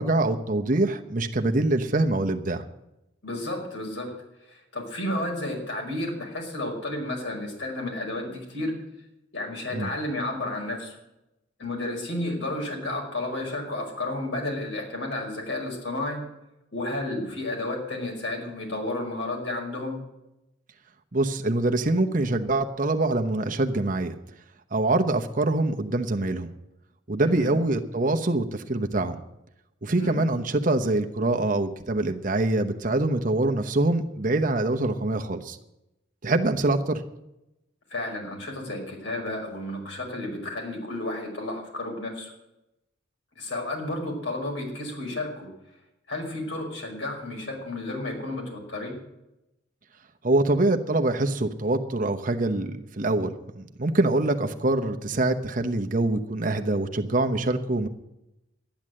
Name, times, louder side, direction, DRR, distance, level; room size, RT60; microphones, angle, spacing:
voice 1, 0.0-2.6 9.7-9.9 21.1-24.1 24.7-26.5 27.1-29.2 29.8-35.6 36.2-37.0 50.2-57.9, right 2 dB, 40° right, 6 dB, 0.9 m, -24 dB
voice 2, 3.2-4.1 4.5-8.8 9.3-11.0 11.6-16.3 16.7-20.0 27.2-27.5 30.0-30.2 37.9-42.3 43.4-45.5 46.1-49.0, left 1 dB, 70° left, 1 dB, 5.2 m, -32 dB
12.5 x 10.5 x 7.6 m, 0.90 s
head